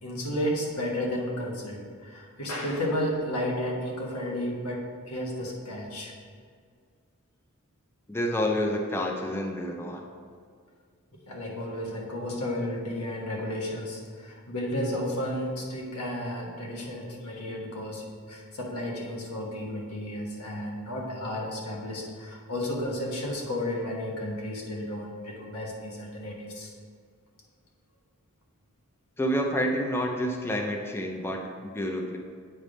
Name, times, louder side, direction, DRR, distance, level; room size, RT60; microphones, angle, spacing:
voice 1, 0.0-6.1 11.1-26.7, left 1 dB, 85° left, -1 dB, 1.3 m, -33 dB
voice 2, 8.1-10.0 29.2-32.2, equal, 10° left, 2 dB, 0.4 m, -29 dB
8.3 x 3.4 x 5.1 m, 2.1 s
head